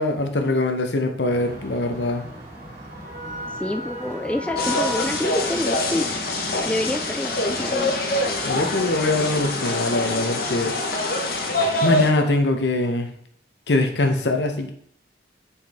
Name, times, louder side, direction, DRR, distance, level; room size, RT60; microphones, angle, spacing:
voice 1, 0.0-2.2 8.4-10.7 11.8-13.1 13.7-14.7, left 2 dB, 75° left, 5 dB, 1.0 m, -22 dB
sound 1, 1.3-9.4, left 2 dB, 55° right, 2.4 m, -36 dB
voice 2, 3.6-6.2 6.7-7.9, left 1 dB, 5° left, 5 dB, 0.3 m, -27 dB
sound 2, 4.6-12.1, left 2 dB, 55° left, 1.1 m, -25 dB
7.4 x 4.7 x 3.6 m, 0.64 s
head